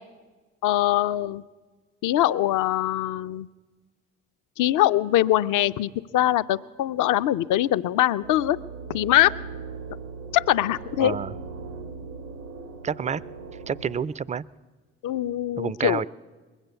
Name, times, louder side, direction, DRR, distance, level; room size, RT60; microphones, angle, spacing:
voice 1, 0.6-1.4 2.0-3.5 4.6-8.6 8.9-9.3 10.3-11.2 15.0-16.0, left 13 dB, 60° left, 14 dB, 0.5 m, -22 dB
sound 1, 8.2-14.1, right 4 dB, 90° right, 1.2 m, -39 dB
voice 2, 11.0-11.3 12.8-13.2 13.7-14.4 15.6-16.1, right 7 dB, 20° right, 21 dB, 0.3 m, -28 dB
21.0 x 8.1 x 6.8 m, 1.3 s
hypercardioid pair, 40°, 35 cm